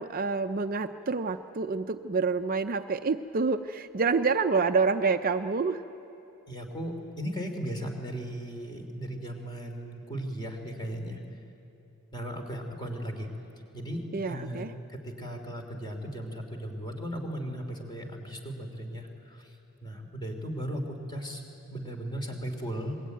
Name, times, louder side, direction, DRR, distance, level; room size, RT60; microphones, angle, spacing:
voice 1, 0.0-5.8 14.1-14.7, right 4 dB, 40° right, 8 dB, 0.5 m, -27 dB
voice 2, 6.5-11.2 12.1-13.3 13.7-14.6 14.9-19.6 19.8-21.4 21.7-23.0, equal, 20° left, 4 dB, 2.9 m, -36 dB
26.0 x 21.0 x 9.3 m, 2.9 s
head